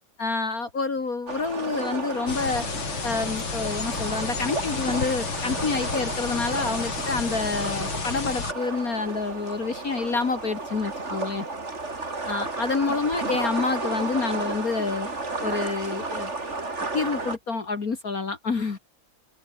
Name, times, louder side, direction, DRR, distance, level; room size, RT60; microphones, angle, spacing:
voice 1, 0.0-2.7 3.0-11.5 12.3-15.1 15.4-16.3 16.9-18.8, left 4 dB, 45° left, 2.4 m, -28 dB
sound 1, 1.3-17.4, right 3 dB, 30° right, 3.5 m, -33 dB
sound 2, 2.3-8.5, left 6 dB, 70° left, 3.4 m, -32 dB
omnidirectional pair, 2.3 m